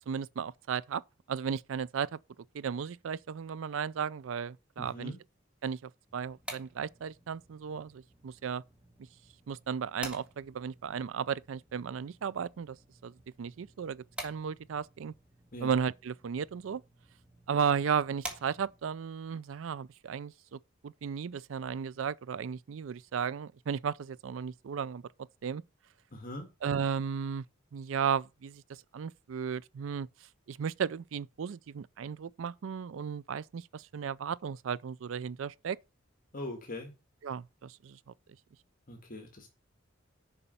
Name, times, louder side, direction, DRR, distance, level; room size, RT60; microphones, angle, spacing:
voice 1, 0.1-1.0 1.3-2.2 2.5-5.1 5.6-8.6 9.5-12.8 13.0-15.1 15.6-16.8 17.5-25.0 25.4-25.6 26.6-27.4 27.7-30.1 30.5-35.8 37.2-38.0, right 7 dB, 80° right, 0.4 m, -35 dB
voice 2, 4.8-5.2 15.5-15.7 26.1-26.5 36.3-36.9 38.9-39.5, left 1 dB, 45° left, 1.7 m, -41 dB
sound 1, 6.1-19.0, right 1 dB, 5° right, 1.8 m, -49 dB
7.0 x 5.4 x 6.8 m
head